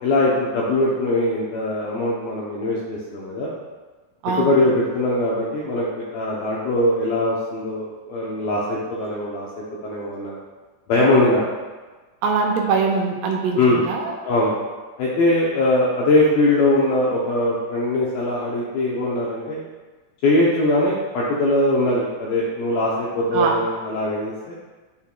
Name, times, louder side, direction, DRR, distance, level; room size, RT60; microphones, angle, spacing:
voice 1, 0.0-3.5 4.4-5.9 6.1-10.4 10.9-11.4 13.5-13.8 14.3-14.5 15.0-19.6 20.2-24.5, left 1 dB, 80° left, -5 dB, 2.1 m, -21 dB
voice 2, 4.2-4.6 12.2-13.6 13.9-14.1 23.3-23.6, right 4 dB, 80° right, 0 dB, 2.6 m, -22 dB
11.5 x 4.0 x 2.2 m, 1.3 s
omnidirectional pair, 5.1 m